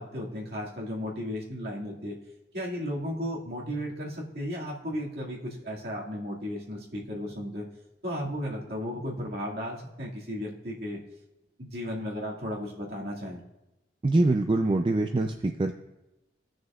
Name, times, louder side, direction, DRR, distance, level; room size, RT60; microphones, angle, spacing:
voice 1, 0.0-2.2 2.5-7.7 8.0-11.0 11.6-13.4, equal, 60° right, -4 dB, 2.1 m, -34 dB
voice 2, 14.0-15.7, right 2 dB, 30° right, 4 dB, 0.4 m, -24 dB
17.5 x 6.3 x 2.4 m, 0.96 s
head